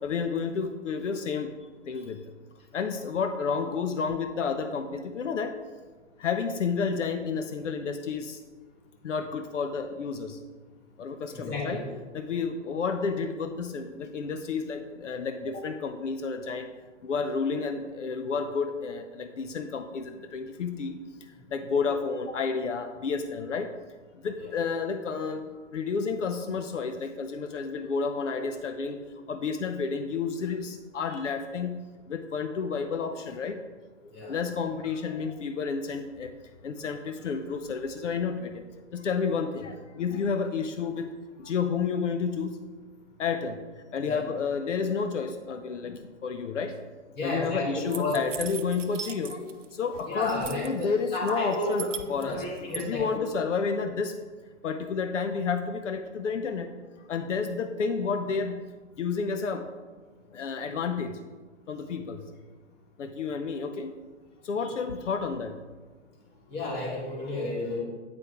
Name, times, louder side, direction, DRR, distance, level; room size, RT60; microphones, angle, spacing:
voice 1, 0.0-1.5 1.9-2.2 2.7-5.5 6.2-8.4 9.0-10.4 11.0-11.8 12.1-16.7 17.0-21.0 21.5-23.7 24.2-25.4 25.7-29.0 29.3-31.8 32.1-33.6 34.3-36.3 36.6-38.6 38.9-41.1 41.4-42.6 43.2-43.6 43.9-46.7 47.2-52.4 52.8-54.1 54.6-56.7 57.1-58.6 59.0-59.7 60.3-61.1 61.7-62.2 63.0-63.9 64.5-65.5, left 5 dB, 85° left, 7 dB, 0.6 m, -30 dB
voice 2, 11.4-11.8 24.4-24.5 31.0-31.2 34.1-34.4 44.0-44.2 47.1-48.2 50.1-51.7 51.9-53.2 64.6-64.7 66.5-67.8, left 2 dB, 25° left, -3 dB, 1.8 m, -32 dB
sound 1, 47.9-49.7 49.9-50.9 51.3-52.8, right 7 dB, 85° right, 0.6 m, -39 dB
8.6 x 4.7 x 2.9 m, 1.4 s
figure-of-eight pair, 125°, 36 cm